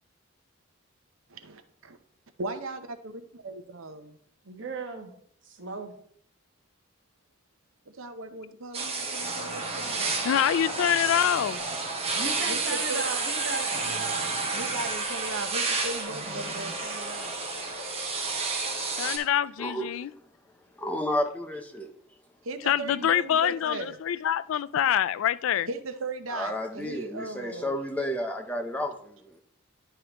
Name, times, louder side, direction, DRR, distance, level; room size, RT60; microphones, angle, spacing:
voice 1, 2.4-4.2 7.9-10.2 12.4-13.1 14.5-17.4 22.4-24.0 25.7-27.8, right 3 dB, 75° right, 0.7 m, -37 dB
voice 2, 4.4-5.1 5.4-5.9 12.1-14.3, right 3 dB, 60° right, 1.2 m, -36 dB
sound 1, 8.7-19.2, right 3 dB, 30° right, 1.3 m, -30 dB
sound 2, 9.2-12.8 13.7-14.9 16.0-16.8, equal, 25° left, 3.3 m, -48 dB
voice 3, 10.2-11.6 19.0-20.1 22.7-25.7, left 10 dB, 70° left, 0.3 m, -25 dB
voice 4, 20.8-21.9 26.3-29.4, left 1 dB, 5° left, 0.6 m, -31 dB
11.0 x 4.9 x 3.0 m
head